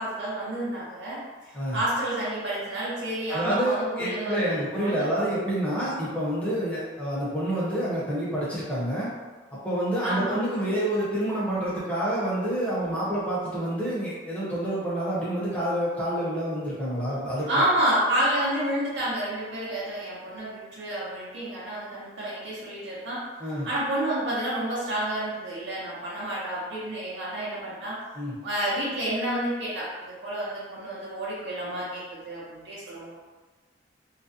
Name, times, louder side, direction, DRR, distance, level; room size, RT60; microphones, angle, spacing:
voice 1, 0.0-5.1 10.0-10.4 17.5-23.2 23.6-28.0 28.4-33.1, right 1 dB, 85° right, -8 dB, 0.7 m, -29 dB
voice 2, 3.3-9.1 9.5-17.5 23.4-23.7 28.1-28.4, right 1 dB, 10° left, -9 dB, 0.6 m, -28 dB
2.4 x 2.0 x 2.6 m, 1.3 s
head